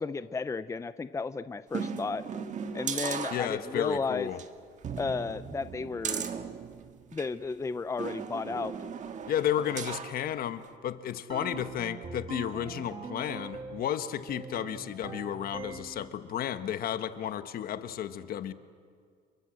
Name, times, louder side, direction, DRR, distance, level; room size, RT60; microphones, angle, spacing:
voice 1, 0.0-2.2 2.7-4.3 5.0-6.3 7.1-8.7, left 4 dB, 20° left, 13 dB, 0.6 m, -33 dB
sound 1, 1.7-3.9 4.3-4.5 4.8-7.3 8.0-10.2 10.6-10.7, right 6 dB, 45° right, 1.7 m, -37 dB
voice 2, 3.3-4.4 9.3-18.5, left 10 dB, 60° left, 11 dB, 1.4 m, -33 dB
sound 2, 11.3-13.9 14.3-16.1, right 5 dB, 30° right, 1.6 m, -42 dB
29.5 x 22.5 x 7.9 m, 2.1 s
cardioid pair, 110°, 17 cm